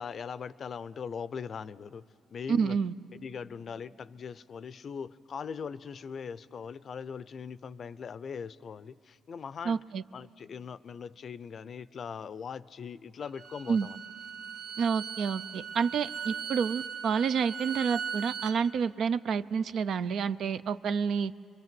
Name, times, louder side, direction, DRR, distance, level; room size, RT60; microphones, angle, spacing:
voice 1, 0.0-2.0 2.3-2.8 3.1-9.8 10.1-14.0, left 6 dB, 50° left, 17 dB, 0.5 m, -40 dB
voice 2, 2.5-2.9 9.6-10.0 13.7-13.9 14.8-21.3, right 6 dB, 65° right, 13 dB, 0.5 m, -29 dB
Bowed string instrument, 13.2-18.6, right 7 dB, 90° right, 1.0 m, -39 dB
25.0 x 22.5 x 7.7 m, 2.3 s
cardioid pair, 90°, 0 cm